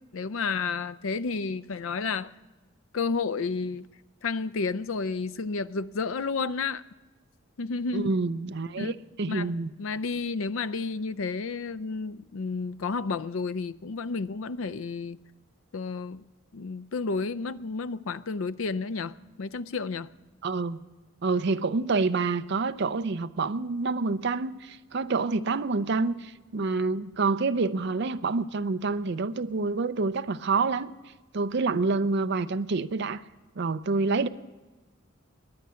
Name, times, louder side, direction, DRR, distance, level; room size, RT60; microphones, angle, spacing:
voice 1, 0.1-2.3 2.9-3.9 4.2-6.8 7.6-8.1 8.8-9.0 9.3-9.5 9.8-15.2 15.7-16.2 16.5-20.1, left 4 dB, 70° left, 0.5 m, -31 dB
voice 2, 7.9-9.7 20.4-20.8 21.2-30.9 31.3-33.2 33.6-34.3, right 3 dB, 55° right, 0.5 m, -27 dB
21.5 x 9.5 x 5.7 m
head